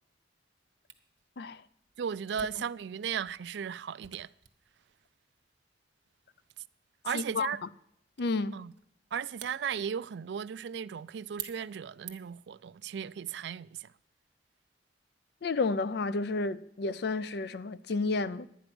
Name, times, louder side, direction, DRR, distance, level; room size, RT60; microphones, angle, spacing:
Camera, 0.9-12.5, right 12 dB, 85° right, 1.1 m, -52 dB
voice 1, 2.0-4.3 7.0-7.6 8.5-8.7 9.1-13.9, right 7 dB, 65° right, 0.4 m, -36 dB
voice 2, 7.1-7.5 8.2-8.6 15.4-18.5, left 3 dB, 60° left, 0.5 m, -31 dB
11.5 x 9.2 x 6.0 m
head